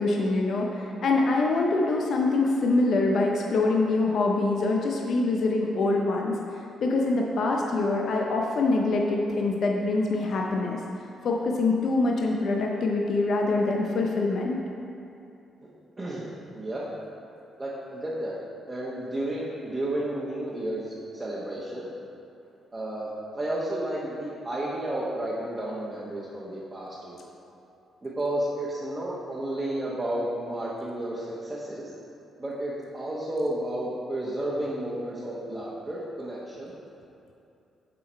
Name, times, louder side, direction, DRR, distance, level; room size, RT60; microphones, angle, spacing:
voice 1, 0.0-6.3 6.8-10.8 11.2-14.6, left 3 dB, 65° left, 0 dB, 0.6 m, -24 dB
voice 2, 16.0-16.3 16.5-16.9 17.6-18.3 18.7-21.9 22.7-27.2 28.0-31.9 32.4-36.7, right 1 dB, 25° right, -8 dB, 1.1 m, -32 dB
7.4 x 3.8 x 4.4 m, 2.7 s
supercardioid pair, 55°, 0 cm